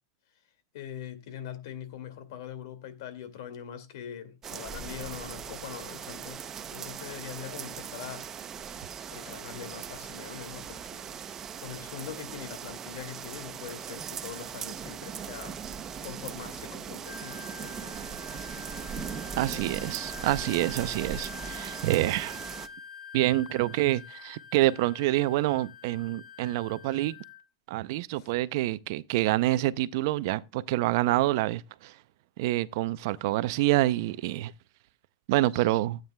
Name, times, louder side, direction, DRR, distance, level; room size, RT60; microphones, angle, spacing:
voice 1, 0.7-8.7 9.1-11.1 11.6-15.6 16.0-18.2 19.3-19.6 28.1-28.3 31.1-31.2, left 9 dB, 65° left, 2.1 m, -43 dB
sound 1, 4.4-22.7, right 7 dB, 20° right, 0.7 m, -39 dB
Wind instrument woodwind instrument, 17.0-27.4, left 6 dB, 5° left, 1.3 m, -46 dB
voice 2, 19.4-22.4 23.1-27.1 27.7-31.9 32.4-34.5 35.3-36.0, right 16 dB, 55° right, 0.5 m, -27 dB
16.5 x 8.9 x 2.2 m
supercardioid pair, 160°, 2 cm